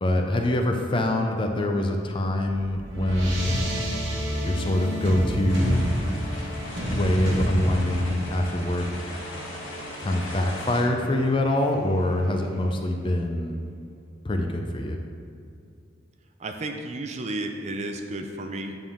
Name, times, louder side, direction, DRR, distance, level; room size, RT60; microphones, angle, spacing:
voice 1, 0.0-3.6 4.4-5.9 6.9-9.1 10.0-13.6 14.2-15.0, left 1 dB, 25° left, 3 dB, 0.4 m, -25 dB
sound 1, 2.3-12.7, equal, 65° right, 1.2 m, -31 dB
sound 2, 5.5-10.8, left 1 dB, 80° left, 1.5 m, -39 dB
voice 2, 16.4-18.8, right 2 dB, 35° right, 5 dB, 0.4 m, -32 dB
9.0 x 3.6 x 3.5 m, 2.4 s
head